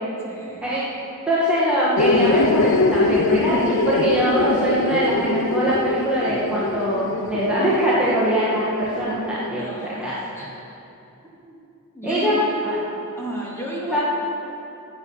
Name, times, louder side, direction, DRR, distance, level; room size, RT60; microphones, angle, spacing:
voice 1, 0.2-0.7 9.6-10.0 10.4-10.5 11.4-11.6 11.9-12.6 13.1-14.0, right 1 dB, 10° left, -5 dB, 2.3 m, -33 dB
voice 2, 1.3-10.2 12.0-12.8 13.9-14.0, right 1 dB, 5° right, -9 dB, 1.8 m, -22 dB
sound 1, 2.0-9.5, left 3 dB, 55° left, 0.5 m, -23 dB
14.5 x 8.1 x 5.7 m, 2.7 s
head